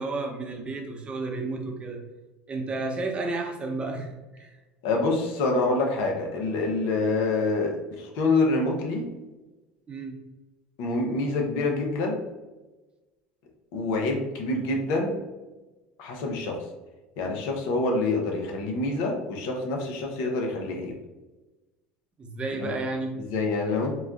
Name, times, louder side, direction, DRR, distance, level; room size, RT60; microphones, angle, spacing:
voice 1, 0.0-2.0 2.5-4.5 9.9-10.2 22.2-23.1, right 3 dB, 25° right, 2 dB, 0.7 m, -32 dB
voice 2, 4.8-9.1 10.8-12.2 13.7-15.1 16.0-16.6 17.2-20.9 22.6-22.7 23.3-23.9, left 3 dB, 70° left, 2 dB, 0.7 m, -26 dB
4.0 x 2.3 x 2.4 m, 1.1 s
supercardioid pair, 100°, 4 cm